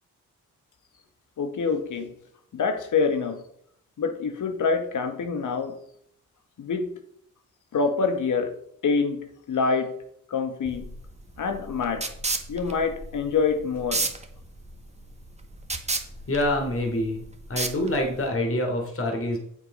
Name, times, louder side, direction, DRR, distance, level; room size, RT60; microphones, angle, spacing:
voice 1, 1.4-2.1 2.5-3.4 4.0-5.8 6.6-7.0 7.7-8.6 8.8-10.0 10.3-10.9 11.4-12.1 12.5-14.1, left 5 dB, 65° left, 1.7 m, -26 dB
sound 1, 10.7-18.3, right 3 dB, 20° right, 1.6 m, -33 dB
voice 2, 16.3-17.2 17.5-19.4, left 1 dB, 40° left, 3.2 m, -26 dB
8.1 x 7.6 x 5.5 m
supercardioid pair, 60°, 33 cm